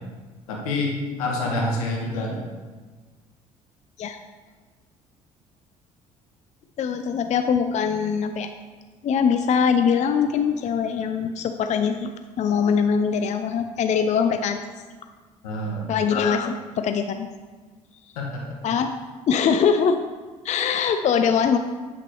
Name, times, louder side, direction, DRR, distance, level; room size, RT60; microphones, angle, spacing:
voice 1, 0.5-2.4 15.4-15.9 18.1-18.6, left 1 dB, 80° left, -1 dB, 1.4 m, -27 dB
voice 2, 6.8-8.5 9.0-12.1 12.4-14.6 15.9-17.3 18.6-18.9 19.3-20.0 20.4-21.6, left 6 dB, 40° left, 8 dB, 0.4 m, -22 dB
8.1 x 5.8 x 3.1 m, 1.4 s
hypercardioid pair, 55°, 18 cm